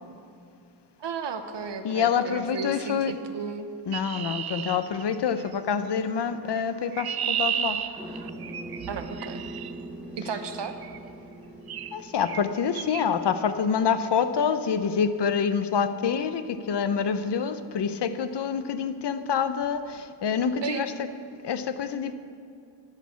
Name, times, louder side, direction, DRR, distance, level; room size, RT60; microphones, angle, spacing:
voice 1, 1.0-3.7 8.9-9.5 10.2-10.8 20.6-20.9, right 5 dB, 85° right, 7 dB, 0.9 m, -34 dB
voice 2, 1.8-3.1 3.9-7.8 11.9-20.9 21.4-22.1, left 7 dB, 75° left, 11 dB, 0.7 m, -27 dB
Chirp tweet, 3.9-5.5 6.6-9.7 10.8-11.1 11.7-11.9 12.2-12.4 12.7-13.0, right 9 dB, 60° right, 0.5 m, -33 dB
sound 1, 8.0-15.2, right 1 dB, 5° right, 0.8 m, -42 dB
10.5 x 6.2 x 8.6 m, 2.4 s
wide cardioid pair, 140°, 41 cm